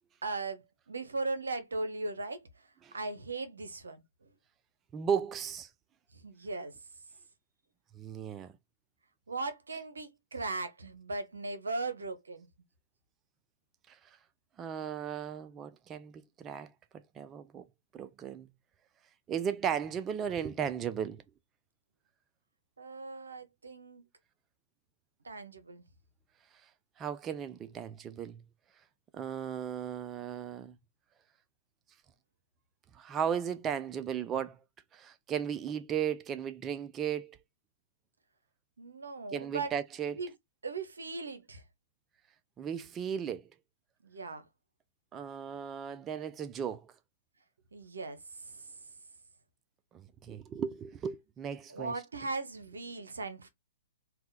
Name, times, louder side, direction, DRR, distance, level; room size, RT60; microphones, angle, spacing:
voice 1, 0.2-2.7 2.9-4.3 6.1-6.8 9.3-12.5 22.8-24.1 25.2-25.8 38.8-39.7 40.2-40.3 40.6-41.6 44.0-44.5 47.7-48.9 51.7-53.5, right 3 dB, 85° right, 0.7 m, -38 dB
voice 2, 4.9-5.7 8.0-8.5 13.9-14.0 14.6-16.7 17.2-17.6 17.9-18.5 19.3-21.2 27.0-28.4 29.1-30.7 32.9-34.6 34.9-37.4 39.3-40.2 42.6-43.5 45.1-46.9 49.9-51.9, right 8 dB, 20° right, 0.4 m, -36 dB
2.8 x 2.2 x 3.9 m
hypercardioid pair, 125°, 0 cm